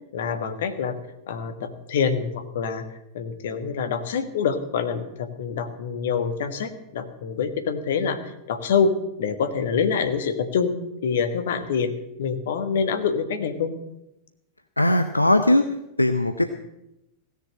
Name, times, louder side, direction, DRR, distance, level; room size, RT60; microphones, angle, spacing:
voice 1, 0.1-1.0 1.3-2.8 3.1-8.2 8.5-10.7 11.0-11.9 12.2-13.7, left 6 dB, 60° left, 9 dB, 1.5 m, -26 dB
voice 2, 14.8-15.7 16.0-16.4, left 1 dB, 85° left, 9 dB, 0.6 m, -19 dB
16.5 x 6.9 x 8.7 m, 0.87 s
figure-of-eight pair, 90°, 0 cm